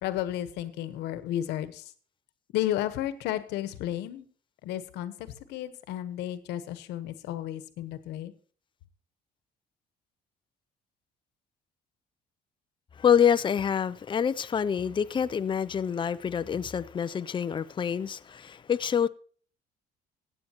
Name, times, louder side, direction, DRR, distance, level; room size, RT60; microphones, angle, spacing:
voice 1, 0.0-1.9 2.5-4.3 4.6-8.3, left 12 dB, 85° left, 1.2 m, -33 dB
voice 2, 13.0-19.1, left 8 dB, 30° left, 0.6 m, -26 dB
16.0 x 9.2 x 3.0 m
cardioid pair, 110°, 17 cm